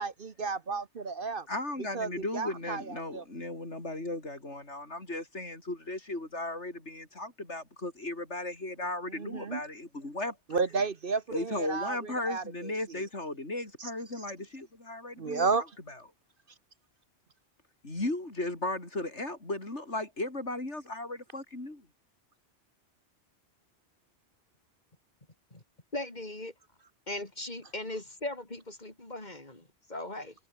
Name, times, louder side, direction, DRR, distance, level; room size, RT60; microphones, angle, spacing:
voice 1, 0.0-1.4 1.9-2.1 2.3-2.8 3.1-3.2 9.2-9.6 10.5-12.0 12.3-12.4 15.2-15.6, right 4 dB, 50° right, 1.2 m, -31 dB
voice 2, 1.5-10.4 11.3-16.0 17.8-21.9, left 2 dB, 80° left, 5.7 m, -36 dB
voice 3, 25.9-26.5 27.1-29.6 29.9-30.3, left 2 dB, 40° left, 4.6 m, -38 dB
omnidirectional pair, 1.2 m